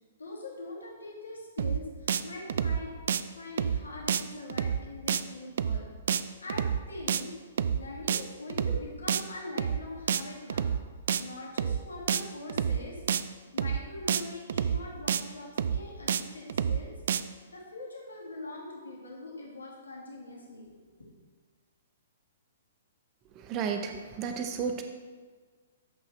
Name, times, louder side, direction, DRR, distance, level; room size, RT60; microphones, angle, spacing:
voice 1, 0.2-2.9 3.3-7.3 7.8-10.7 11.2-13.0 13.5-16.9 17.5-20.8, left 2 dB, 85° left, -3 dB, 2.2 m, -43 dB
sound 1, 1.6-1.8 2.1-2.2 2.5-2.8 3.1-3.2 3.6-3.8 4.1-4.2 4.5-4.8 5.1-5.2 5.6-5.8 6.1-6.2 6.5-6.8 7.1-7.2 7.6-7.8 8.1-8.2 8.5-8.8 9.1-9.2 9.6-9.8 10.1-10.2 10.5-10.8 11.1-11.2 11.6-11.8 12.1-12.2 12.5-12.8 13.1-13.2 13.6-13.8 14.1-14.2 14.5-14.8 15.1-15.2 15.6-15.8 16.1-16.2 16.5-16.8 17.1-17.2, right 8 dB, 65° right, 0.4 m, -28 dB
voice 2, 23.4-24.8, right 6 dB, 30° right, 6 dB, 0.8 m, -33 dB
14.0 x 5.5 x 3.3 m, 1.5 s
figure-of-eight pair, 125°, 0 cm